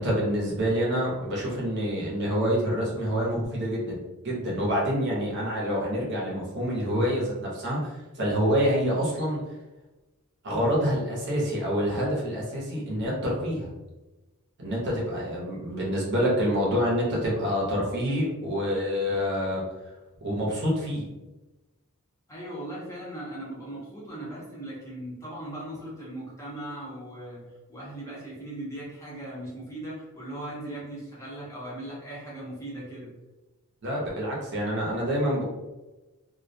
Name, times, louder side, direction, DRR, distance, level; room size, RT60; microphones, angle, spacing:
voice 1, 0.0-9.4 10.4-13.7 14.6-19.6 20.2-21.1 33.8-35.4, equal, 50° right, -4 dB, 0.7 m, -27 dB
voice 2, 22.3-27.4 27.7-33.1, right 1 dB, 15° left, -6 dB, 0.6 m, -38 dB
2.3 x 2.1 x 2.6 m, 1.1 s
head